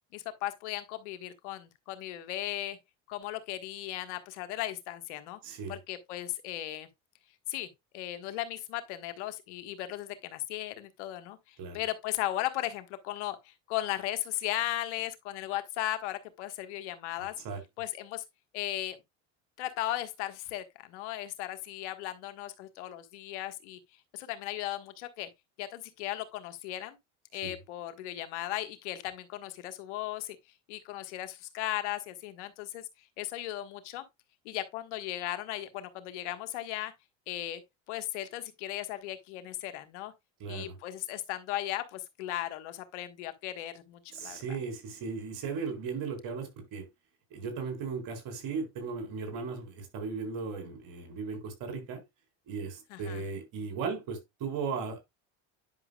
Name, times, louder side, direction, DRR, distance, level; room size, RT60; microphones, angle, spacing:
voice 1, 0.1-2.8 3.1-5.4 5.7-6.9 7.5-17.3 17.8-18.2 18.5-19.0 19.6-23.8 24.1-25.3 25.6-27.0 27.3-30.4 30.7-34.0 34.4-36.9 37.3-37.6 37.9-40.1 40.5-44.6 52.9-53.2, left 14 dB, 90° left, 1.5 m, -36 dB
voice 2, 5.4-5.7 11.6-11.8 17.2-17.6 27.4-27.5 40.4-40.7 44.1-46.9 47.3-52.0 52.5-55.0, right 5 dB, 70° right, 4.1 m, -37 dB
10.5 x 6.1 x 2.3 m
supercardioid pair, 95°, 34 cm